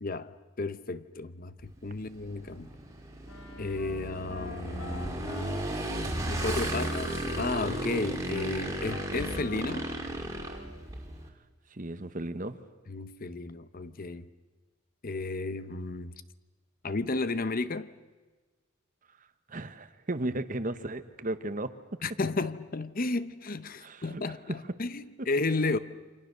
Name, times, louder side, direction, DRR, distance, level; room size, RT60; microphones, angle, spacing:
voice 1, 0.0-2.7 3.6-5.3 6.3-9.9 12.9-14.3 15.0-16.1 16.8-17.9 22.0-25.8, left 3 dB, 40° left, 0.8 m, -33 dB
Motorcycle / Engine, 1.6-11.3, right 1 dB, 15° right, 2.7 m, -35 dB
Wind instrument woodwind instrument, 3.3-10.8, left 2 dB, 70° left, 3.0 m, -44 dB
voice 2, 11.7-12.6 19.5-22.0 23.8-24.6 25.2-25.3, right 1 dB, 40° right, 1.1 m, -35 dB
28.5 x 25.5 x 6.7 m
head